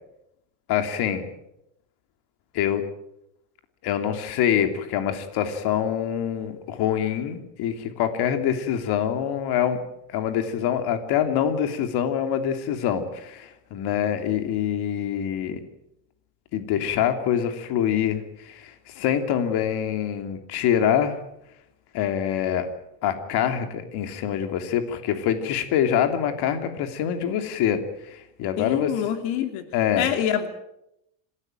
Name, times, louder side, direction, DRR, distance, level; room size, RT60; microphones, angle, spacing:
voice 1, 0.7-1.2 2.5-2.8 3.8-9.8 10.1-15.6 16.5-21.2 21.9-22.7 23.0-28.9 29.7-30.1, left 9 dB, 55° left, 7 dB, 3.0 m, -25 dB
voice 2, 28.6-29.6 29.9-30.5, left 10 dB, 70° left, 7 dB, 2.9 m, -25 dB
27.0 x 16.5 x 9.2 m, 0.82 s
cardioid pair, 140°, 46 cm